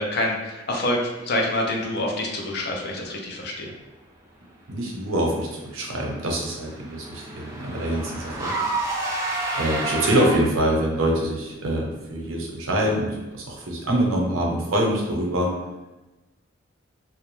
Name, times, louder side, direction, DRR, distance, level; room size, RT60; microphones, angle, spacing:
voice 1, 0.0-3.7, left 1 dB, 55° left, 0 dB, 0.5 m, -26 dB
voice 2, 4.7-8.6 9.5-15.5, right 1 dB, 90° right, -1 dB, 0.6 m, -25 dB
Car / Engine, 5.7-10.7, right 2 dB, 15° right, 0.3 m, -30 dB
2.3 x 2.0 x 3.0 m, 1.1 s
head